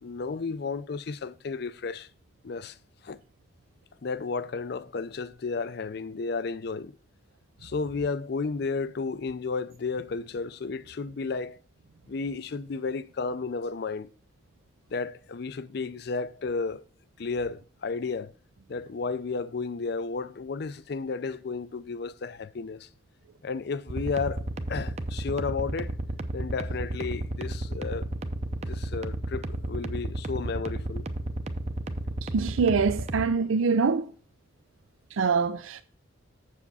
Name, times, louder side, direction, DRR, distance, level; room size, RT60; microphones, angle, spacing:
voice 1, 0.0-2.1 2.4-2.8 3.0-3.2 4.0-6.9 7.6-11.6 12.1-14.1 14.9-16.9 17.2-18.3 18.7-22.9 23.4-25.9 26.3-28.1 28.7-31.0, left 4 dB, 55° left, 0.4 m, -33 dB
sound 1, 23.9-33.3, right 1 dB, 35° right, 0.6 m, -32 dB
voice 2, 32.2-34.1 35.1-35.8, right 5 dB, 85° right, 0.5 m, -24 dB
7.3 x 7.3 x 4.1 m
head